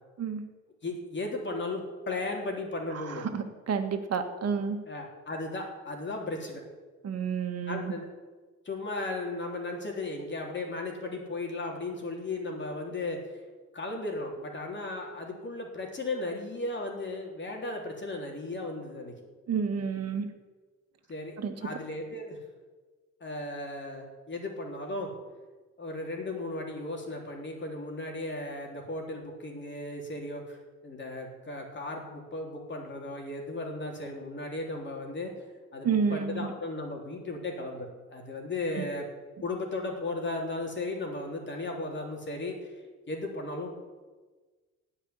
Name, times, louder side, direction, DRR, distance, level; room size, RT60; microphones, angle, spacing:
voice 1, 0.8-3.3 4.9-6.6 7.7-8.1 8.6-13.3 13.7-19.1 21.1-22.4 23.2-25.1 25.8-30.6 30.8-35.3 35.7-39.1 39.4-42.6 43.1-43.7, left 2 dB, 40° left, 1 dB, 3.5 m, -36 dB
voice 2, 3.3-4.8 7.0-7.9 19.5-20.3 21.4-21.5 35.8-36.5 38.8-38.9, right 6 dB, 55° right, 6 dB, 1.8 m, -30 dB
17.0 x 5.8 x 9.9 m, 1.3 s
cardioid pair, 90°, 30 cm